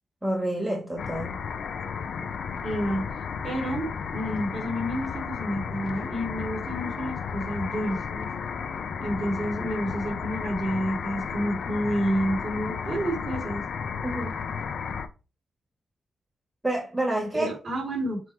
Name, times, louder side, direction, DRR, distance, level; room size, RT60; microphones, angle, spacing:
voice 1, 0.2-1.3 14.0-14.4 16.6-17.5, right 1 dB, 15° right, 1.8 m, -28 dB
sound 1, 1.0-15.1, left 6 dB, 75° left, 0.7 m, -33 dB
voice 2, 2.6-3.0 3.4-8.3 9.0-13.6 17.3-18.2, equal, 50° right, 3.4 m, -29 dB
7.5 x 3.1 x 4.7 m
wide cardioid pair, 125°, 0 cm